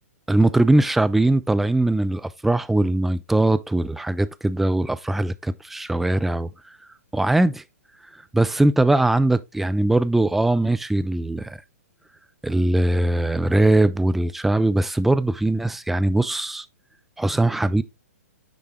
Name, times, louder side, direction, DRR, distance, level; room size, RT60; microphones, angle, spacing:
voice 1, 0.3-6.5 7.1-7.6 8.3-11.6 12.4-16.7 17.2-17.8, right 2 dB, 5° right, 0.3 m, -20 dB
9.8 x 3.3 x 3.1 m
figure-of-eight pair, 115°, 8 cm